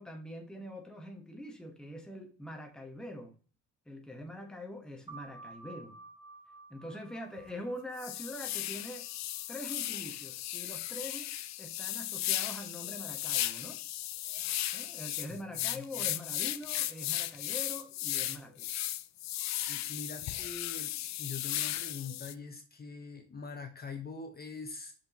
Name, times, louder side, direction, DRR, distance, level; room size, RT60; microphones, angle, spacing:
voice 1, 0.0-3.3 3.8-5.9 6.7-9.1 9.5-11.3 11.6-13.8 14.7-18.9, left 1 dB, ahead, 1.4 m, -44 dB
sound 1, 5.1-10.3, right 3 dB, 15° right, 2.3 m, -53 dB
sound 2, 7.4-7.5 8.0-22.3, left 14 dB, 65° left, 0.5 m, -36 dB
voice 2, 15.7-16.1 19.7-24.9, left 4 dB, 30° left, 1.1 m, -44 dB
6.5 x 6.2 x 3.0 m
cardioid pair, 90°, 30 cm